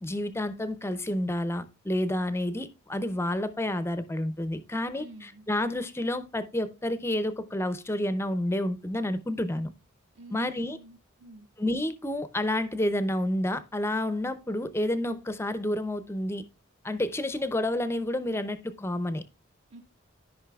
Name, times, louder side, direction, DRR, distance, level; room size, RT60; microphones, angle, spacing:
voice 1, 0.0-9.7 10.3-10.8 11.6-16.4 16.8-19.2, left 1 dB, 10° left, 0.5 m, -29 dB
voice 2, 4.9-5.5 10.1-11.5 19.7-19.8, right 1 dB, 65° right, 1.4 m, -48 dB
13.5 x 5.4 x 2.3 m
head